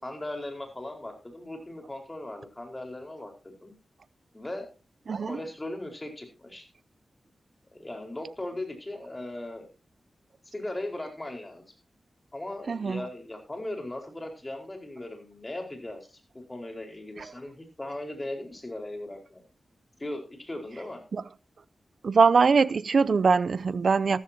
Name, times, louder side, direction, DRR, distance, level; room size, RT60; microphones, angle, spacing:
voice 1, 0.0-3.7 4.3-4.7 5.2-6.6 7.7-9.7 10.4-11.6 12.3-19.4 20.0-21.0, left 1 dB, 25° left, 4.6 m, -38 dB
voice 2, 12.7-13.0 21.1-21.2 22.0-24.2, right 5 dB, 70° right, 0.6 m, -22 dB
14.0 x 13.5 x 2.9 m
cardioid pair, 60°, 0 cm